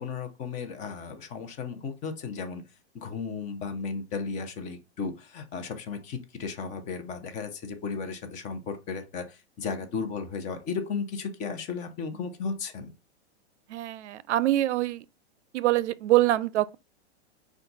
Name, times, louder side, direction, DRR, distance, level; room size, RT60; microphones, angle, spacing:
voice 1, 0.0-2.6 2.9-12.9, left 5 dB, 20° left, 0.6 m, -35 dB
voice 2, 13.7-15.0 15.5-16.8, right 15 dB, 80° right, 0.5 m, -24 dB
5.6 x 2.3 x 3.9 m
hypercardioid pair, 150°, 34 cm